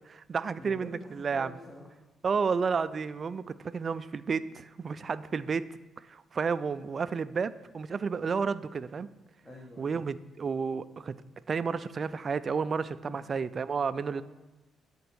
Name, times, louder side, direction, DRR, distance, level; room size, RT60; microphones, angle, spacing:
voice 1, 0.0-1.5 2.2-5.6 6.1-9.1 9.8-11.2 11.5-14.2, right 5 dB, 40° right, 15 dB, 0.3 m, -31 dB
voice 2, 0.5-2.0 9.4-10.0 13.0-13.2 14.0-14.2, left 1 dB, 20° left, -3 dB, 1.6 m, -47 dB
9.5 x 4.5 x 6.1 m, 1.1 s
cardioid pair, 90°, 0 cm